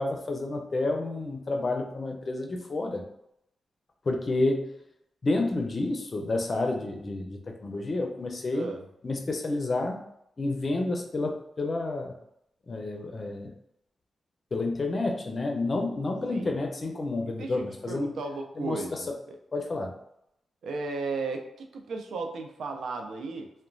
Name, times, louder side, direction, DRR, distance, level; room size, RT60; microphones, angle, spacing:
voice 1, 0.0-3.0 4.1-4.7 5.2-8.7 9.0-10.0 10.4-12.1 12.7-13.5 14.5-18.1 18.6-19.0 19.5-19.9, left 2 dB, 45° left, 3 dB, 0.5 m, -30 dB
voice 2, 8.5-8.9 16.3-16.6 17.3-19.4 20.6-23.5, right 3 dB, 85° right, 4 dB, 0.3 m, -35 dB
2.9 x 2.1 x 2.5 m, 0.78 s
cardioid pair, 65°, 0 cm